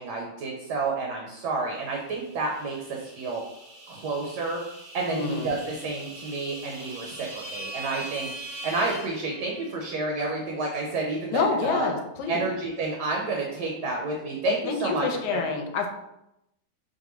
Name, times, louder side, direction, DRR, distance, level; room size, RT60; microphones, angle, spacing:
voice 1, 0.0-3.4 3.9-4.6 4.9-11.9 12.3-15.1 15.3-15.4, right 3 dB, 70° right, -1 dB, 1.2 m, -30 dB
sound 1, 1.9-9.9, right 2 dB, 85° right, 1.5 m, -42 dB
voice 2, 5.1-5.5 11.3-12.5 14.4-15.9, left 5 dB, 75° left, 4 dB, 1.2 m, -27 dB
4.6 x 2.5 x 3.0 m, 0.85 s
omnidirectional pair, 2.0 m